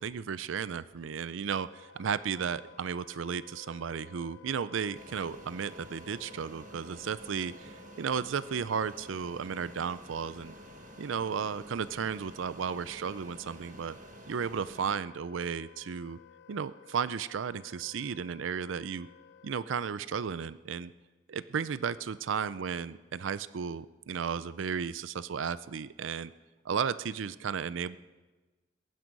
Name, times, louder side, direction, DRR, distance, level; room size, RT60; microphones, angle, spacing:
voice 1, 0.0-10.5 11.0-14.0 14.3-16.2 16.5-19.1 19.4-20.9 21.3-26.3 26.6-28.0, right 6 dB, 85° right, 16 dB, 0.5 m, -34 dB
Wind instrument woodwind instrument, 1.7-19.9, left 5 dB, 70° left, 0.7 m, -55 dB
Fixed-wing aircraft airplane, 5.0-15.0, right 2 dB, 40° right, 1.2 m, -51 dB
21.5 x 11.0 x 5.3 m, 1.2 s
head